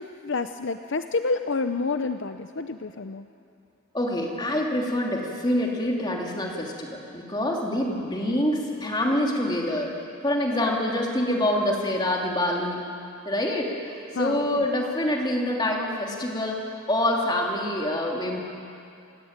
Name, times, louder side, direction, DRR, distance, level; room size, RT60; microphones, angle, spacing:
voice 1, 0.0-3.3 14.1-14.6, left 3 dB, 55° left, 8 dB, 0.7 m, -29 dB
voice 2, 3.9-9.9 10.2-12.8 13.2-16.6 16.9-18.4, left 1 dB, 20° left, -1 dB, 3.0 m, -26 dB
28.5 x 17.0 x 8.9 m, 2.6 s
head